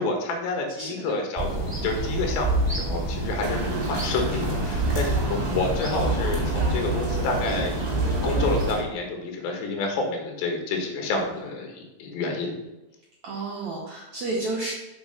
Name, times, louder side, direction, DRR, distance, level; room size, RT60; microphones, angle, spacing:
voice 1, 0.0-7.8 8.2-12.6, left 3 dB, 75° left, 2 dB, 3.4 m, -29 dB
voice 2, 0.8-1.2 5.2-5.6 11.1-11.4 13.2-14.7, right 2 dB, 85° right, -4 dB, 1.6 m, -32 dB
sound 1, 1.4-8.7, right 2 dB, 5° right, 1.9 m, -27 dB
sound 2, 3.4-8.8, equal, 35° right, 2.0 m, -31 dB
7.0 x 4.6 x 5.6 m, 0.99 s
omnidirectional pair, 5.1 m